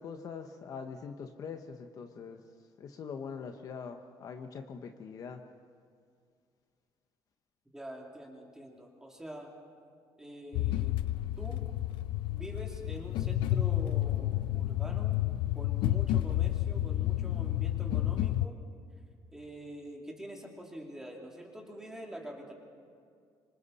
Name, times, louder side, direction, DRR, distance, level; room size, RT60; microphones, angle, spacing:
voice 1, 0.0-2.4 2.8-5.4, left 6 dB, 45° left, 6 dB, 1.0 m, -43 dB
voice 2, 7.7-9.5 10.2-10.9 11.4-11.7 12.3-15.2 15.5-18.6 19.3-22.5, equal, 5° right, -1 dB, 2.9 m, -45 dB
sound 1, 10.5-18.5, left 14 dB, 85° left, 0.6 m, -30 dB
26.5 x 24.5 x 4.2 m, 2.2 s
cardioid pair, 150°, 8 cm